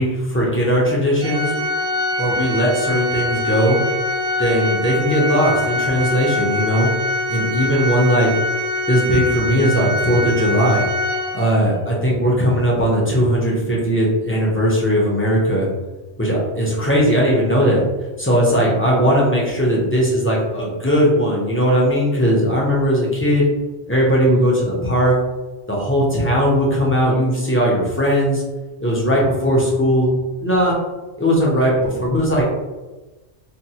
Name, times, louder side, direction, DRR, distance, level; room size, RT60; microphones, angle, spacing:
voice 1, 0.0-1.5 2.2-3.8 4.4-6.9 7.3-8.3 8.9-10.9 11.3-15.7 16.2-17.8 18.2-23.4 23.9-25.1 25.7-28.4 28.8-30.1 30.4-30.8 31.2-32.5, equal, 15° left, -4 dB, 0.4 m, -18 dB
Organ, 1.2-11.8, left 2 dB, 65° right, 1.1 m, -23 dB
4.4 x 2.0 x 2.8 m, 1.2 s
omnidirectional pair, 1.2 m